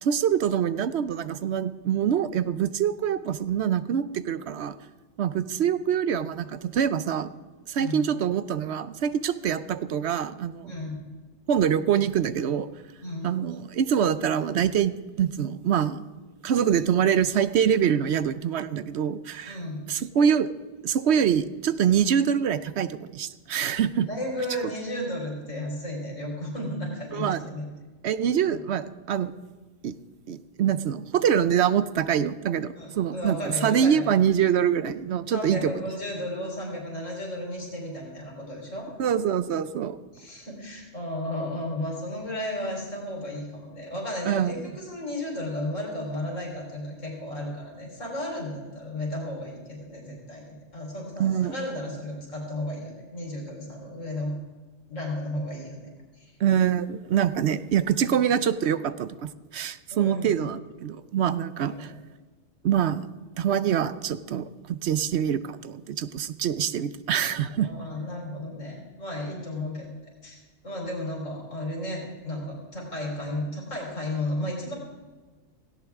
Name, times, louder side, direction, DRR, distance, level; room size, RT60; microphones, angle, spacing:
voice 1, 0.0-4.7 5.2-7.3 7.7-10.7 11.5-12.7 13.2-14.9 15.2-16.0 16.4-19.6 19.9-20.5 20.8-24.1 27.1-27.4 28.0-29.3 29.8-30.0 30.3-35.8 39.0-40.0 44.3-44.6 51.2-51.6 56.4-61.9 62.6-63.1 63.4-67.7, right 8 dB, 65° right, 14 dB, 0.8 m, -25 dB
voice 2, 10.7-11.0 13.0-13.3 19.4-19.8 24.1-27.6 32.8-34.1 35.3-38.9 40.1-54.3 54.9-55.9 56.2-56.3 59.9-60.4 61.6-62.0 67.6-69.9 70.2-70.4 70.6-74.7, left 1 dB, 75° left, -2 dB, 4.2 m, -34 dB
17.0 x 17.0 x 3.6 m, 1.3 s
omnidirectional pair, 1.3 m